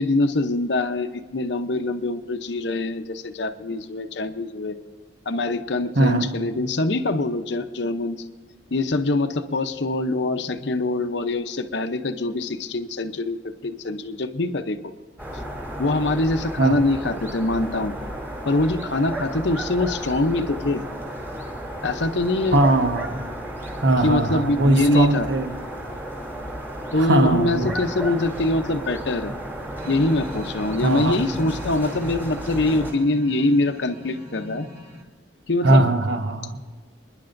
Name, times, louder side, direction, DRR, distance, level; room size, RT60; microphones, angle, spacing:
voice 1, 0.0-4.8 5.3-8.2 8.7-14.8 15.8-17.9 18.4-20.8 21.8-22.6 24.0-25.3 26.9-29.3 29.9-34.7 35.5-35.9, left 2 dB, 65° left, 8 dB, 0.8 m, -24 dB
voice 2, 5.9-6.3 16.6-16.8 22.5-23.2 23.8-25.5 27.0-27.7 30.8-31.2 35.6-36.6, right 2 dB, 65° right, 6 dB, 1.2 m, -20 dB
sound 1, 15.2-32.9, right 1 dB, 10° right, 2.9 m, -33 dB
sound 2, 29.8-35.0, left 1 dB, 40° right, 1.8 m, -38 dB
28.0 x 10.5 x 2.6 m, 1.5 s
head